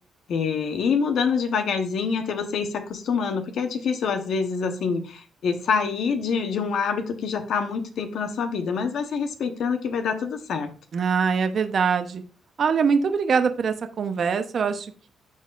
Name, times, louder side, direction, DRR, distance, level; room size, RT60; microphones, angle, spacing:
voice 1, 0.3-10.7, left 5 dB, 75° left, 7 dB, 1.1 m, -26 dB
voice 2, 10.9-12.2 12.6-15.1, right 6 dB, 55° right, 8 dB, 0.8 m, -23 dB
12.0 x 4.0 x 2.5 m, 0.38 s
cardioid pair, 75°, 0 cm